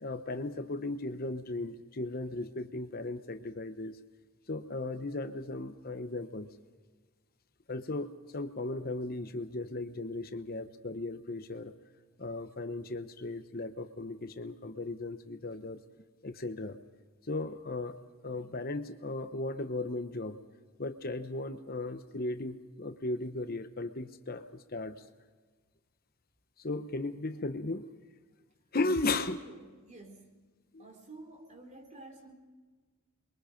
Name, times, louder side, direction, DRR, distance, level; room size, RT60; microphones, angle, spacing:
voice 1, 0.0-4.0 4.5-6.5 7.7-8.1 8.3-11.7 12.2-15.8 16.2-16.8 17.3-20.4 20.8-25.0 26.6-27.9 28.7-29.4 30.7-30.8, left 2 dB, 45° left, 9 dB, 0.9 m, -36 dB
voice 2, 29.1-30.4 30.8-32.3, right 2 dB, 35° right, 4 dB, 3.4 m, -51 dB
28.0 x 23.0 x 5.2 m, 1.4 s
head